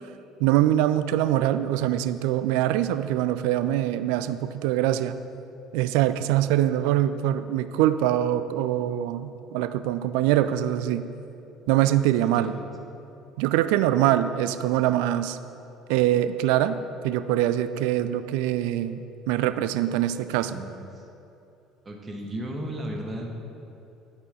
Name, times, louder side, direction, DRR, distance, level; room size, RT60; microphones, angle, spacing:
voice 1, 0.4-5.2 5.7-11.0 11.7-12.5 13.4-15.4 15.9-16.8 17.0-20.6, right 12 dB, 60° right, 12 dB, 0.3 m, -23 dB
voice 2, 12.2-12.6 20.3-21.1 21.8-23.4, right 1 dB, 25° right, 1 dB, 1.2 m, -35 dB
9.1 x 8.8 x 3.8 m, 2.8 s
figure-of-eight pair, 60°, 0 cm